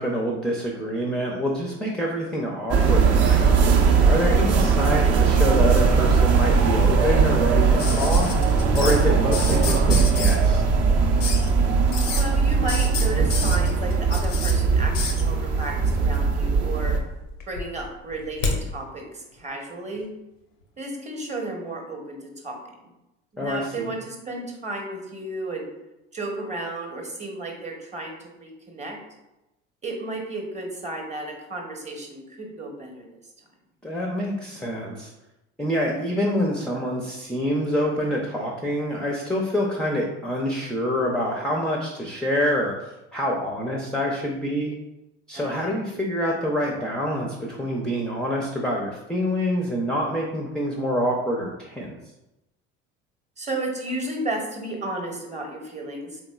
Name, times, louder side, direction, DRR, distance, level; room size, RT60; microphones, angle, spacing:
voice 1, 0.0-3.6 4.1-8.3 8.7-10.6 23.4-23.9 33.8-35.1 35.6-44.7 45.3-52.0, equal, ahead, -1 dB, 0.5 m, -26 dB
sound 1, 2.7-17.0, right 5 dB, 45° right, 0.6 m, -19 dB
sound 2, 7.8-9.0 9.3-10.4 11.2-11.5 11.9-12.2 12.7-14.5 14.9-15.2 16.3-16.9 17.2-18.6 19.9-20.0, left 5 dB, 85° left, 0.6 m, -30 dB
voice 2, 12.2-17.0 17.5-20.1 20.8-22.9 23.3-25.7 26.1-29.0 29.8-33.1 45.3-45.7 53.4-56.2, right 2 dB, 20° right, 2 dB, 0.9 m, -33 dB
3.5 x 2.9 x 2.3 m, 0.94 s
hypercardioid pair, 65°, 36 cm